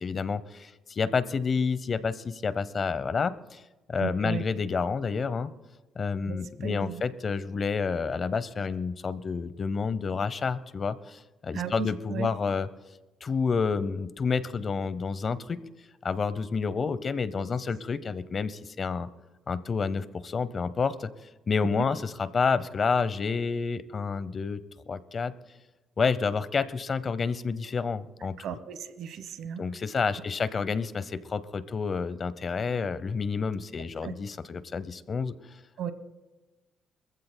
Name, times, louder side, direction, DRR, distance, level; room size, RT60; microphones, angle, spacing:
voice 1, 0.0-3.6 3.9-5.5 6.0-12.7 13.2-15.6 16.0-19.1 19.5-21.1 21.5-25.3 26.0-28.4 29.6-35.4, left 5 dB, 45° left, 16 dB, 0.7 m, -29 dB
voice 2, 4.0-4.4 6.3-7.0 11.5-12.3 21.7-21.8 28.4-29.6 34.0-34.1 35.8-35.9, right 8 dB, 75° right, 12 dB, 1.1 m, -35 dB
25.5 x 15.0 x 2.2 m, 1.1 s
cardioid pair, 90°, 0 cm